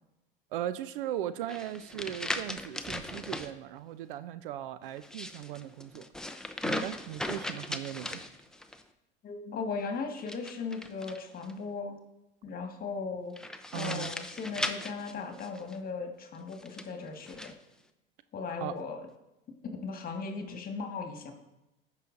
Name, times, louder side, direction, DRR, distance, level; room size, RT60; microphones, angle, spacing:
voice 1, 0.5-6.0 6.6-8.2 13.7-14.1 18.6-18.7, right 12 dB, 65° right, 14 dB, 0.5 m, -38 dB
sound 1, 1.5-3.5 4.9-8.8 10.2-11.5 13.4-15.8 16.5-17.5, left 1 dB, ahead, 0.5 m, -38 dB
voice 2, 9.2-11.9 12.4-13.4 13.7-17.5 18.3-19.0 19.6-21.3, left 4 dB, 30° left, 4 dB, 1.6 m, -37 dB
15.5 x 5.8 x 2.6 m, 0.93 s
hypercardioid pair, 85°, 29 cm